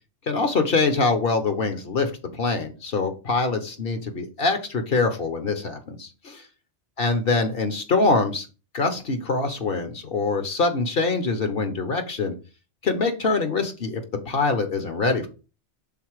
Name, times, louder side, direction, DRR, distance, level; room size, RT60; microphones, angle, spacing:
voice 1, 0.3-6.4 7.0-8.5 8.7-12.4 12.8-15.3, left 3 dB, 55° left, 7 dB, 1.1 m, -24 dB
5.8 x 3.9 x 4.7 m, 0.32 s
omnidirectional pair, 1.2 m